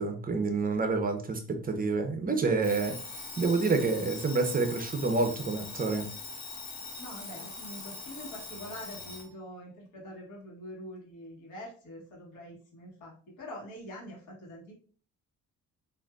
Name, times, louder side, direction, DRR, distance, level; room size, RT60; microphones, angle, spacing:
voice 1, 0.0-2.9 3.4-6.1, right 3 dB, 30° right, 6 dB, 0.7 m, -28 dB
Alarm, 2.6-9.3, left 3 dB, 65° left, 1.5 m, -42 dB
voice 2, 7.0-14.7, left 1 dB, 90° left, -1 dB, 1.4 m, -45 dB
3.5 x 2.6 x 2.5 m, 0.41 s
cardioid pair, 90°, 30 cm